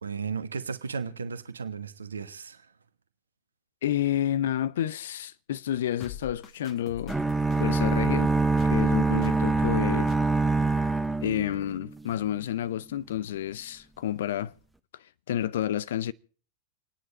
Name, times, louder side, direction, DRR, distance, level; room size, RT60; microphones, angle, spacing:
voice 1, 0.0-2.7, right 5 dB, 75° right, 1.3 m, -35 dB
voice 2, 3.8-7.2 7.6-8.3 8.7-10.1 11.2-14.5 15.3-16.1, left 11 dB, 60° left, 0.6 m, -30 dB
sound 1, 6.0-8.1 8.6-8.9 9.2-9.8 10.1-10.2, left 8 dB, 30° left, 1.8 m, -43 dB
sound 2, 7.1-12.1, right 3 dB, 5° right, 0.7 m, -25 dB
29.0 x 9.9 x 4.1 m
figure-of-eight pair, 90°, 0 cm